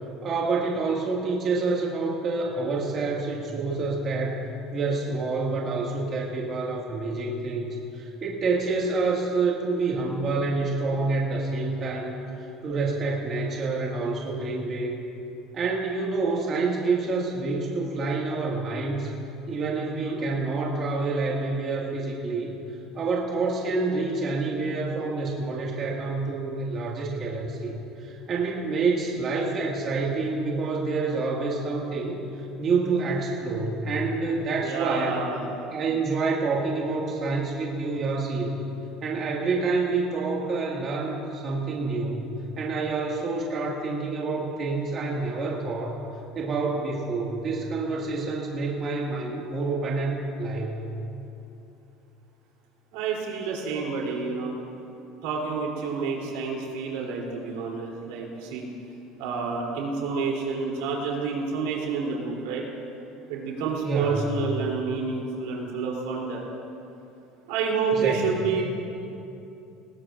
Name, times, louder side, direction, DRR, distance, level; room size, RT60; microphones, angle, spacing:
voice 1, 0.2-4.4 4.7-12.1 12.6-15.0 15.5-19.1 19.5-22.5 22.9-32.2 32.6-35.2 35.7-38.6 39.0-42.2 42.6-46.0 46.3-50.8 63.8-64.3 67.9-68.3, right 3 dB, 35° right, -3 dB, 1.9 m, -27 dB
voice 2, 19.9-20.2 34.6-35.4 52.9-54.6 55.2-58.7 59.2-62.6 63.3-66.4 67.5-68.6, right 5 dB, 90° right, -2 dB, 3.1 m, -29 dB
19.5 x 17.5 x 2.5 m, 2.8 s
cardioid pair, 150°, 0 cm